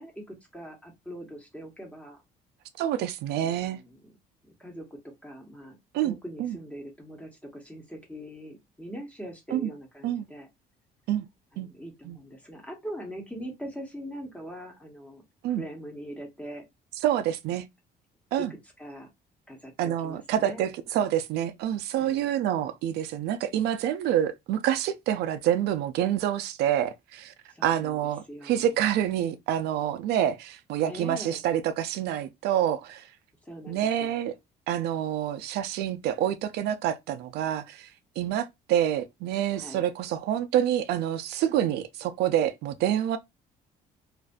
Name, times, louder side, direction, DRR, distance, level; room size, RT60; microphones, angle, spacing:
voice 1, 0.0-2.2 3.3-4.1 4.4-5.8 6.0-10.5 11.5-15.2 15.5-16.7 18.3-18.5 18.8-19.1 19.5-20.6 21.9-22.3 27.5-28.0 28.3-28.8 30.9-31.4 33.4-34.2 39.5-39.9, equal, 5° left, 1.0 m, -42 dB
voice 2, 2.8-3.8 5.9-6.6 9.5-9.7 10.0-10.3 11.1-11.3 11.6-11.7 12.0-12.2 15.4-15.6 17.0-17.7 18.3-18.5 19.8-27.3 27.6-33.0 33.7-34.3 34.7-37.9 38.2-43.2, right 11 dB, 80° right, 0.4 m, -27 dB
2.5 x 2.4 x 2.2 m
cardioid pair, 110°, 17 cm